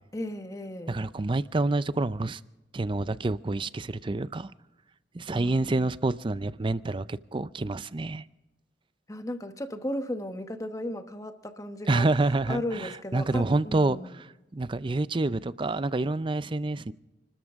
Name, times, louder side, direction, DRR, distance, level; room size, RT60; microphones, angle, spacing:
voice 1, 0.1-1.0 5.3-5.9 9.1-12.1 12.5-14.2, left 1 dB, 20° left, 8 dB, 1.1 m, -35 dB
voice 2, 0.9-2.4 2.7-4.5 5.1-8.2 11.9-14.3 14.5-16.9, right 2 dB, 30° right, 16 dB, 0.5 m, -28 dB
30.0 x 13.5 x 3.6 m, 1.0 s
head